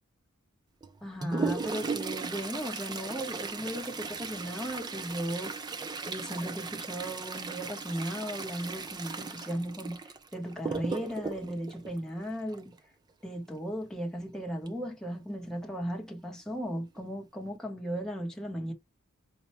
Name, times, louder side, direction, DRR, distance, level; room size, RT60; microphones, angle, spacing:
Toilet flush, 0.8-12.8 14.7-14.8 15.1-15.2 16.0-16.1 16.7-17.0 17.4-17.6, right 4 dB, 20° right, 0.3 m, -37 dB
voice 1, 1.0-5.5 6.1-12.7 13.2-18.7, equal, ahead, 0.9 m, -36 dB
4.3 x 2.2 x 2.9 m
head